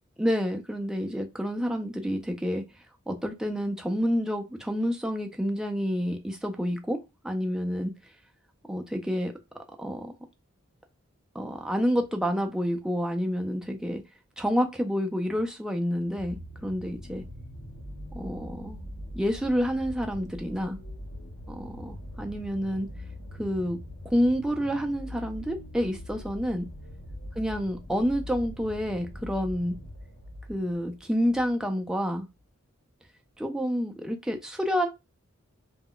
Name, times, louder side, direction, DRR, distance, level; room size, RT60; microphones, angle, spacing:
voice 1, 0.2-2.6 3.1-7.9 8.7-9.3 9.8-10.1 11.3-14.0 14.4-17.2 18.1-18.8 19.1-20.8 21.5-22.9 23.4-23.8 24.0-26.7 27.4-29.8 30.5-32.3 33.4-34.9, equal, 5° right, 0.3 m, -28 dB
sound 1, 16.1-31.6 32.4-32.5, equal, 60° left, 0.6 m, -42 dB
2.2 x 2.1 x 3.6 m
head